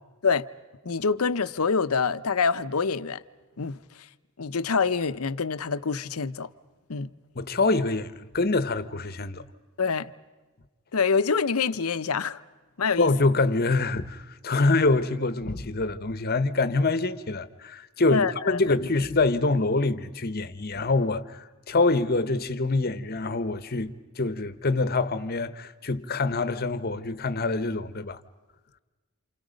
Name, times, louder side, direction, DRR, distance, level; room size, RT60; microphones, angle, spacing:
voice 1, 0.8-3.2 3.6-3.8 4.4-6.5 6.9-7.1 9.8-10.1 10.9-12.4 12.8-13.1 18.1-18.6, left 5 dB, 80° left, 0.8 m, -26 dB
voice 2, 7.4-9.4 13.0-28.2, left 3 dB, 45° left, 1.0 m, -25 dB
29.0 x 28.5 x 5.2 m
head